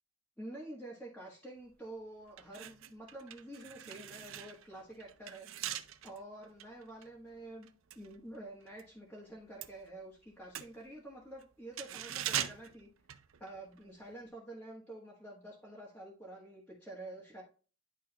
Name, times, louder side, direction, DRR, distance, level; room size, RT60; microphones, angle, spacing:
voice 1, 0.4-5.5 6.0-7.7 7.9-12.9 13.4-17.4, right 1 dB, 5° left, -5 dB, 1.4 m, -48 dB
sound 1, 1.7-1.9 2.3-8.9 9.2-13.8 14.1-14.3, right 11 dB, 85° right, 0.5 m, -43 dB
10.5 x 3.7 x 2.8 m, 0.37 s
head